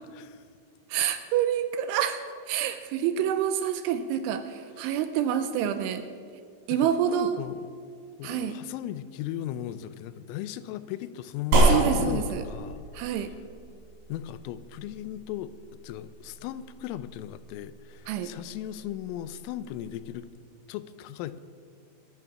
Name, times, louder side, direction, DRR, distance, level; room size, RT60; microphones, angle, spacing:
voice 1, 0.1-0.4 2.7-2.8 6.7-7.7 8.2-13.1 14.1-20.3 20.7-21.4, left 12 dB, 85° left, 14 dB, 3.2 m, -37 dB
voice 2, 0.9-6.1 6.7-7.4 8.2-8.6 11.6-12.4 12.9-13.3 18.1-18.3, right 9 dB, 85° right, 9 dB, 2.9 m, -27 dB
sound 1, 11.5-20.2, right 2 dB, 50° right, 5.0 m, -30 dB
21.5 x 9.2 x 5.7 m, 2.1 s
omnidirectional pair, 5.7 m